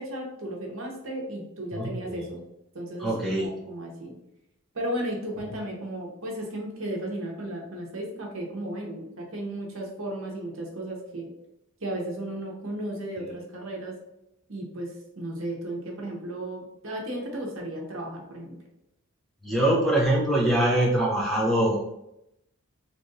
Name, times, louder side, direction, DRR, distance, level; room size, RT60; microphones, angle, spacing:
voice 1, 0.0-2.4 2.7-4.1 4.7-11.3 11.8-13.9 14.5-18.5, right 1 dB, 65° right, 0 dB, 0.9 m, -34 dB
voice 2, 1.7-2.3 3.0-3.5 19.4-21.8, right 1 dB, ahead, -5 dB, 0.7 m, -23 dB
3.0 x 2.5 x 3.8 m, 0.83 s
head